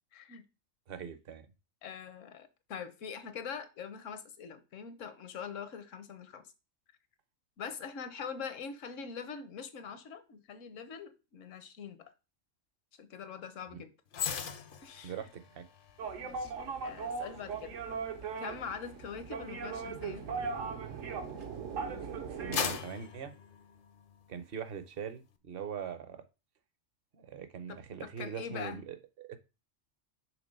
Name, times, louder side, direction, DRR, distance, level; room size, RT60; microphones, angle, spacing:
voice 1, 0.1-0.4 1.8-6.5 7.6-12.1 13.0-13.9 14.8-15.3 16.2-16.5 16.8-17.8 18.4-20.2 27.7-28.8, left 6 dB, 75° left, 1.2 m, -43 dB
voice 2, 0.9-1.5 13.7-13.8 15.0-15.6 22.4-23.3 24.3-26.2 27.1-29.4, right 7 dB, 55° right, 0.8 m, -42 dB
sound 1, 14.1-21.5 22.0-24.3 24.7-24.9, left 7 dB, 55° left, 0.7 m, -42 dB
sound 2, 16.0-22.8, right 5 dB, 80° right, 1.3 m, -38 dB
6.0 x 3.7 x 5.3 m
omnidirectional pair, 1.3 m